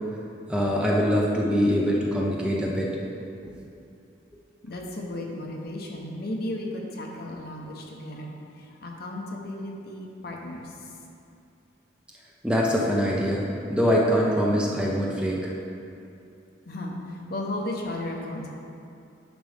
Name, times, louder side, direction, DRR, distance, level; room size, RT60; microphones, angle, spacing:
voice 1, 0.5-2.9 3.4-3.5 12.4-15.5, equal, 5° right, -4 dB, 0.8 m, -23 dB
voice 2, 4.6-10.9 16.7-18.5, left 1 dB, 55° left, 0 dB, 1.0 m, -35 dB
10.5 x 6.0 x 3.5 m, 2.6 s
head